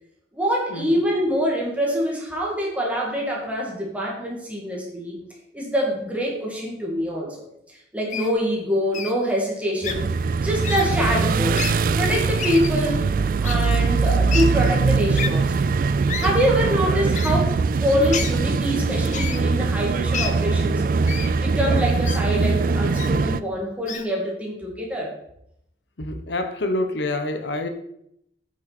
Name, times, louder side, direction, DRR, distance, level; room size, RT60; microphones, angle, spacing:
voice 1, 0.3-5.2 5.5-7.4 7.7-11.6 11.9-13.1 13.4-15.5 16.2-20.9 21.4-25.1, equal, 10° right, -3 dB, 2.1 m, -25 dB
Wild animals, 8.1-8.3 8.9-9.1 9.8-10.0 10.6-10.9 11.5-11.7 12.4-12.7 13.4-13.5 14.3-14.4 15.2-15.3 16.1-16.3 17.1-17.3 18.1-18.4 19.1-19.4 20.1-20.3 21.1-21.3 22.0-22.2 22.9-23.1 23.9-24.0, left 7 dB, 45° left, 0.7 m, -29 dB
sound 1, 9.9-23.4, right 4 dB, 50° right, 0.3 m, -22 dB
voice 2, 26.0-27.7, left 2 dB, 80° left, 7 dB, 0.9 m, -27 dB
8.5 x 7.2 x 4.2 m, 0.77 s
head